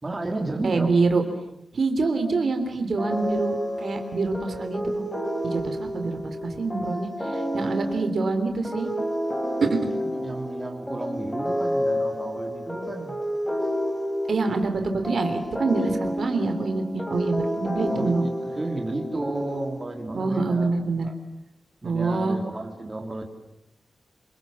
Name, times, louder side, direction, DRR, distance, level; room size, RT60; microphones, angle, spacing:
voice 1, 0.0-1.0 10.0-13.2 17.9-21.1 21.8-23.2, right 2 dB, 20° right, 3 dB, 3.3 m, -33 dB
voice 2, 0.6-1.2 1.7-5.1 5.4-8.9 9.6-9.8 14.3-18.3 20.1-21.1 21.8-22.4, right 3 dB, 55° right, 6 dB, 3.4 m, -26 dB
sound 1, 3.0-20.2, equal, 5° left, 3.7 m, -30 dB
27.5 x 26.5 x 7.6 m, 0.81 s
wide cardioid pair, 165°, 0 cm